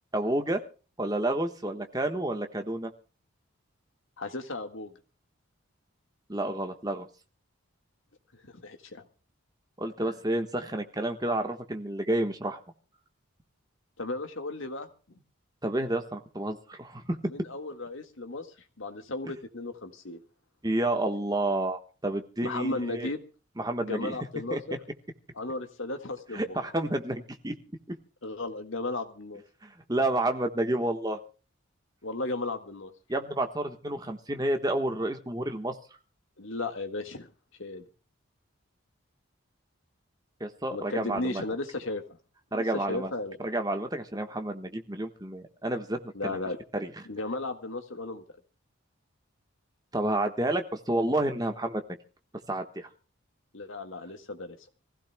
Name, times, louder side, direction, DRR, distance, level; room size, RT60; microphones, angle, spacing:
voice 1, 0.1-0.6 1.0-2.9 6.3-7.1 9.8-12.6 15.6-17.2 20.6-23.1 23.6-24.1 24.5-24.6 26.3-27.6 29.6-31.2 33.1-35.7 40.4-41.4 42.5-43.1 43.4-46.4 46.7-46.9 49.9-51.8 52.5-52.9, right 1 dB, 20° right, 6 dB, 1.3 m, -30 dB
voice 2, 4.2-4.9 8.3-9.0 10.0-10.2 14.0-14.9 17.2-18.5 18.8-20.2 22.4-23.2 23.8-24.8 25.3-26.6 28.2-29.4 32.0-32.9 36.4-37.3 37.6-37.8 40.7-42.0 42.5-43.4 46.1-46.6 47.1-48.2 53.5-54.6, left 2 dB, 65° left, 6 dB, 1.8 m, -35 dB
25.5 x 16.0 x 2.2 m, 0.36 s
head